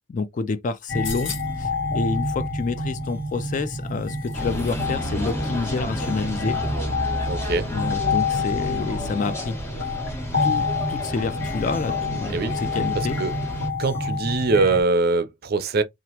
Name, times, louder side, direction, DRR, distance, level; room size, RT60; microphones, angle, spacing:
voice 1, 0.1-6.6 7.7-9.6 10.4-13.2, left 4 dB, 40° left, 0.3 m, -28 dB
sound 1, 0.8-1.7 3.2-5.0 5.2-5.3, left 6 dB, 65° left, 0.7 m, -38 dB
sound 2, 0.9-14.8, left 3 dB, 80° left, 1.2 m, -28 dB
sound 3, 4.3-13.7, equal, 10° left, 0.7 m, -32 dB
voice 2, 7.3-7.7 12.3-12.6 12.9-13.3 13.8-15.8, right 3 dB, 50° right, 0.4 m, -22 dB
2.9 x 2.4 x 2.8 m
head